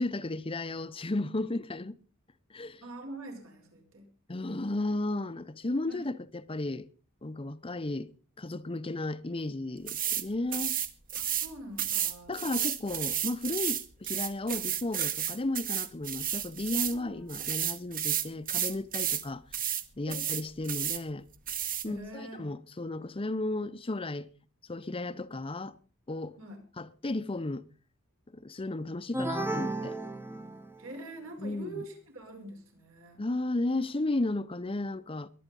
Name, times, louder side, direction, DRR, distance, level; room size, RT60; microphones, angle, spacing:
voice 1, 0.0-2.0 2.5-2.8 4.3-6.9 7.2-8.1 8.4-10.7 12.3-19.6 20.0-21.3 21.8-24.3 24.6-25.8 26.1-26.4 26.8-27.7 28.3-30.0 31.4-31.8 33.2-35.3, left 2 dB, 25° left, 0.7 m, -34 dB
voice 2, 2.8-4.1 5.9-6.0 11.3-12.5 16.9-17.3 20.1-20.3 21.8-22.5 26.4-26.6 30.8-33.2, right 1 dB, 75° right, 5.4 m, -44 dB
sound 1, 9.9-10.2 10.5-11.5 11.8-17.0 17.3-19.2 19.5-19.8 20.1-21.0 21.5-21.9, right 10 dB, 40° right, 1.3 m, -32 dB
sound 2, 29.1-31.0, right 2 dB, 10° right, 0.8 m, -34 dB
22.5 x 9.4 x 5.3 m
head